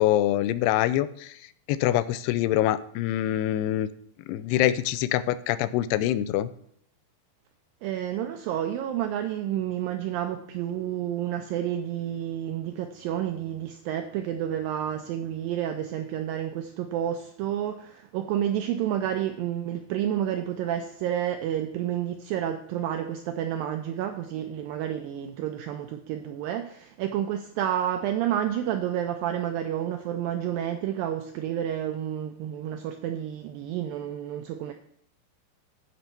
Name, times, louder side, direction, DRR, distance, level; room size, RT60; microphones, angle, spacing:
voice 1, 0.0-1.3 1.7-3.9 4.3-6.5, left 13 dB, 85° left, 14 dB, 2.6 m, -24 dB
voice 2, 7.8-34.7, right 10 dB, 85° right, 6 dB, 2.0 m, -30 dB
14.5 x 5.4 x 4.4 m, 0.67 s
omnidirectional pair, 4.7 m